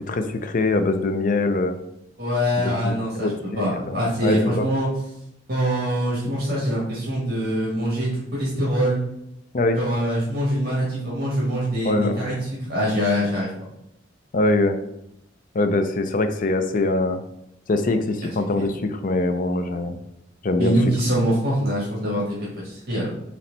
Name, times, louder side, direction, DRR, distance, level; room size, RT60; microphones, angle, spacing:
voice 1, 0.0-1.8 2.6-4.7 9.5-9.8 11.8-12.2 14.3-14.8 15.5-17.2 17.7-20.0 20.4-20.7, left 2 dB, 45° left, 8 dB, 0.4 m, -23 dB
voice 2, 2.2-3.3 3.6-4.9 5.5-9.0 9.8-12.3 12.7-13.5 18.6-18.7 20.6-23.1, equal, 50° right, -6 dB, 1.5 m, -24 dB
4.3 x 3.2 x 3.9 m, 0.81 s
head